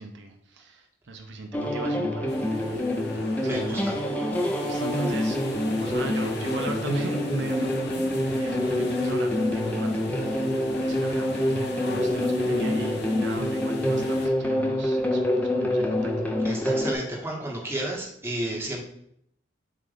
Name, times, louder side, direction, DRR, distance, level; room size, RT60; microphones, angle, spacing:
voice 1, 0.0-2.3 3.4-3.9 4.6-5.4 5.8-16.1, right 2 dB, 60° right, 4 dB, 0.6 m, -37 dB
sound 1, 1.5-16.9, left 1 dB, 10° left, 0.6 m, -26 dB
sound 2, 2.3-14.3, left 3 dB, 55° left, 0.8 m, -40 dB
voice 2, 3.4-4.0 4.6-4.8 16.4-18.8, right 1 dB, 10° right, -2 dB, 1.2 m, -32 dB
7.6 x 2.5 x 5.0 m, 0.73 s
head